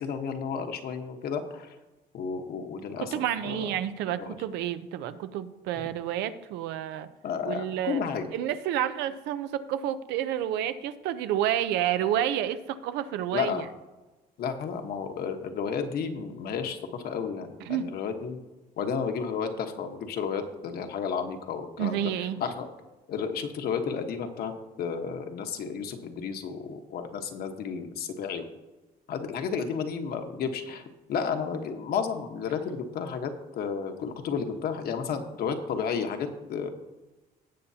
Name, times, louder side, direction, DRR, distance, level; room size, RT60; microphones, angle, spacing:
voice 1, 0.0-1.7 2.1-3.1 3.4-3.6 4.2-4.3 7.2-8.3 13.3-13.6 14.4-18.4 18.8-22.7 23.1-28.5 29.1-30.8 31.1-36.7, left 6 dB, 65° left, 5 dB, 1.3 m, -32 dB
voice 2, 3.0-7.1 7.4-8.0 8.3-13.6 17.7-17.9 21.8-22.4, right 11 dB, 90° right, 12 dB, 0.7 m, -29 dB
18.0 x 7.0 x 2.8 m, 1.1 s
cardioid pair, 110°, 17 cm